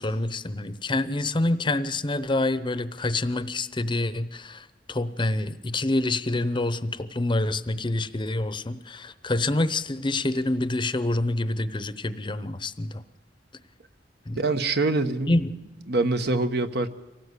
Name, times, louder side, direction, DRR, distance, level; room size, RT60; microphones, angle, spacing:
voice 1, 0.0-13.0 14.3-14.4 15.3-15.5, left 2 dB, 25° left, 14 dB, 0.8 m, -27 dB
voice 2, 14.4-15.3 15.9-16.9, right 2 dB, 65° right, 9 dB, 1.2 m, -24 dB
24.5 x 18.0 x 8.3 m, 1.1 s
head